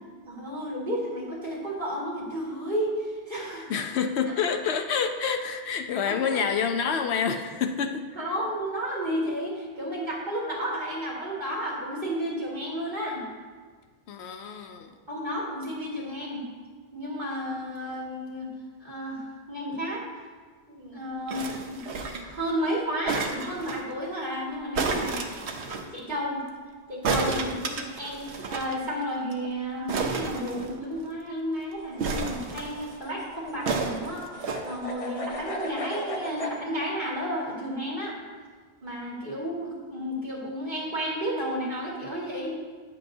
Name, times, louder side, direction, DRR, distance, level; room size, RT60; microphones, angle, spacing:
voice 1, 0.3-3.7 4.3-4.4 6.0-6.4 8.1-13.3 15.1-16.4 16.9-18.5 18.8-20.0 20.7-21.8 22.2-25.2 25.9-26.4 26.9-38.2 38.8-42.6, equal, 45° right, -6 dB, 2.1 m, -32 dB
voice 2, 3.7-8.1 14.1-14.9, left 6 dB, 75° left, 5 dB, 0.8 m, -28 dB
sound 1, 21.3-22.4 23.1-23.8 24.7-25.9 27.0-28.7 29.0-29.1 29.3-29.5 29.9-31.1 32.0-32.9 33.7-34.6 35.4-35.5, right 4 dB, 80° right, 1.0 m, -31 dB
sound 2, 31.8-36.6, left 1 dB, 35° left, 0.8 m, -37 dB
9.6 x 7.5 x 2.7 m, 1.5 s
omnidirectional pair, 1.1 m